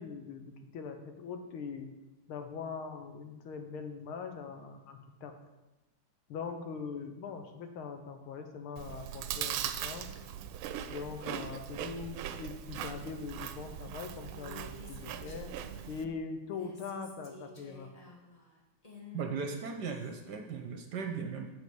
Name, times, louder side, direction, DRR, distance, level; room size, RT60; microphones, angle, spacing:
voice 1, 0.0-1.9 2.3-5.4 6.3-10.2 10.9-15.5 15.9-17.9, left 5 dB, 90° left, 6 dB, 1.8 m, -42 dB
Chewing mastication, 8.8-16.1, right 10 dB, 80° right, 1.4 m, -40 dB
Female speech woman speaking, 14.2-16.1 16.4-20.2, left 2 dB, 25° left, 0.9 m, -52 dB
voice 2, 19.1-21.5, right 5 dB, 65° right, 4 dB, 1.2 m, -37 dB
8.0 x 4.9 x 6.9 m, 1.0 s
omnidirectional pair, 2.3 m